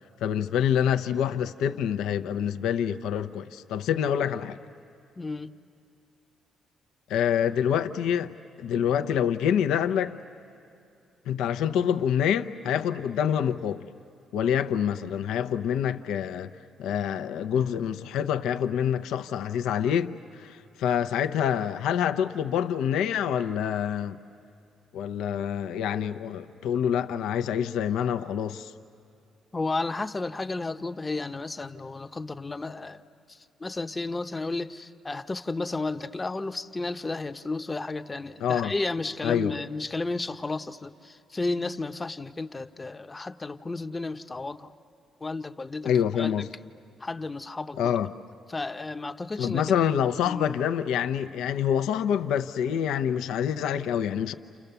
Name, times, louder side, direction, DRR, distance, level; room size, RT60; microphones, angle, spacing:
voice 1, 0.2-4.6 7.1-8.3 8.6-10.2 11.3-13.9 14.3-16.5 16.8-24.2 24.9-28.7 38.4-38.7 39.2-39.6 45.8-46.5 47.8-48.1 49.4-54.3, left 9 dB, 85° left, 0.7 m, -26 dB
voice 2, 5.2-5.5 29.5-33.0 33.6-44.7 45.2-46.5 47.0-47.9 48.5-49.9 50.3-50.5, left 3 dB, 25° left, 0.8 m, -33 dB
30.0 x 29.0 x 6.9 m
cardioid pair, 90°, 0 cm